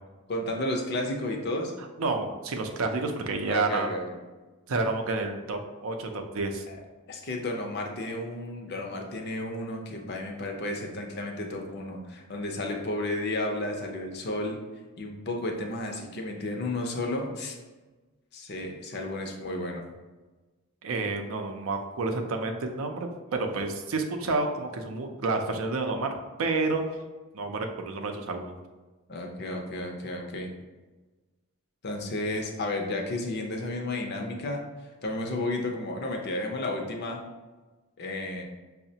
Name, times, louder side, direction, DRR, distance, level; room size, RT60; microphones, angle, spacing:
voice 1, 0.3-1.7 3.5-4.1 6.7-6.8 7.1-14.6 15.0-17.6 18.3-19.8 29.1-30.5 31.8-34.6 35.0-37.2 38.0-38.4, left 1 dB, 45° left, 2 dB, 0.5 m, -32 dB
voice 2, 2.0-3.9 4.7-6.6 20.8-26.1 26.4-26.9 27.3-28.6, right 3 dB, 70° right, 4 dB, 0.5 m, -29 dB
5.6 x 2.1 x 2.7 m, 1.2 s
head